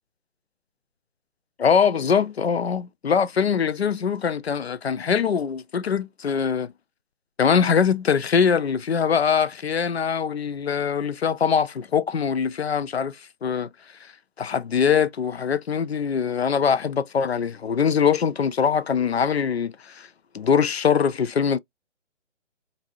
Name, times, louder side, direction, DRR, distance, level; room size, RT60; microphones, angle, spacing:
voice 1, 1.6-6.7 7.4-13.7 14.0-14.1 14.4-20.1 20.3-21.6, left 6 dB, 60° left, 0.5 m, -22 dB
3.1 x 2.6 x 2.5 m
figure-of-eight pair, 145°, 37 cm